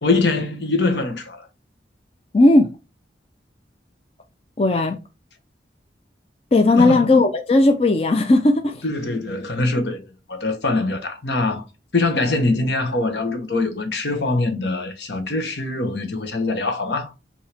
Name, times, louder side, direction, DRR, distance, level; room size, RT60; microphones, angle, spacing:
voice 1, 0.0-1.5 6.8-7.1 8.8-10.0 10.3-11.6 11.9-17.1, left 2 dB, 75° left, 1.2 m, -23 dB
voice 2, 2.3-2.7 4.6-5.0 6.5-8.8, left 2 dB, 35° left, 0.5 m, -16 dB
5.3 x 2.9 x 3.4 m
head